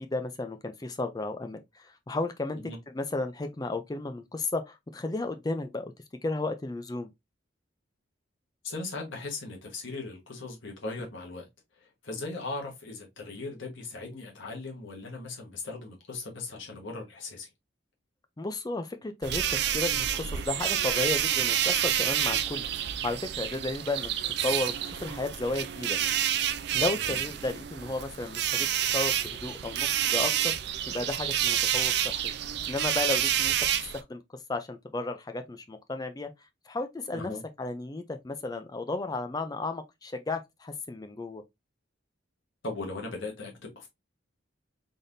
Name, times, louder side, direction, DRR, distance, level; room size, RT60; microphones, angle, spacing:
voice 1, 0.0-2.6 2.9-5.9 6.2-7.1 18.4-22.6 23.0-24.1 24.4-26.0 26.7-28.7 28.9-30.5 30.9-32.2 32.7-33.5 33.9-34.2 34.5-36.3 36.7-37.3 37.6-41.4, left 2 dB, 20° left, 0.4 m, -33 dB
voice 2, 8.6-11.5 11.8-17.5 26.9-27.2 37.1-37.4 42.6-43.9, left 3 dB, 75° left, 1.4 m, -38 dB
sound 1, 19.2-34.0, right 10 dB, 55° right, 0.4 m, -28 dB
4.0 x 3.4 x 2.6 m
head